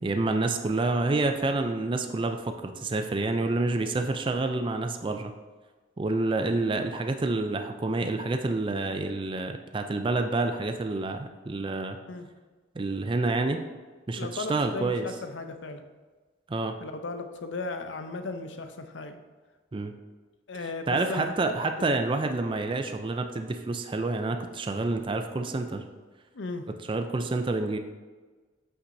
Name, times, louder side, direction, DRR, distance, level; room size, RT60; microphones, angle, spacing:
voice 1, 0.0-5.3 6.0-12.0 12.8-13.6 14.1-15.1 16.5-16.8 19.7-19.9 20.5-25.8 26.9-27.8, right 2 dB, 25° right, 6 dB, 0.4 m, -28 dB
voice 2, 14.2-15.8 16.8-19.2 20.5-22.0 26.3-26.7, left 3 dB, 70° left, 7 dB, 0.6 m, -36 dB
8.3 x 6.0 x 2.7 m, 1.3 s
head